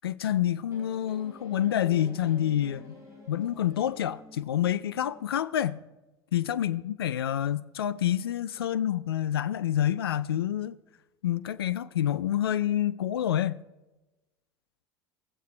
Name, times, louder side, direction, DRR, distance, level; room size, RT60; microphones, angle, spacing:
voice 1, 0.0-2.9 3.3-5.8 6.3-10.8 11.2-13.6, left 11 dB, 80° left, 0.4 m, -28 dB
sound 1, 0.7-5.3, equal, 25° right, 4.3 m, -49 dB
19.0 x 7.4 x 4.4 m
hypercardioid pair, 70°, 12 cm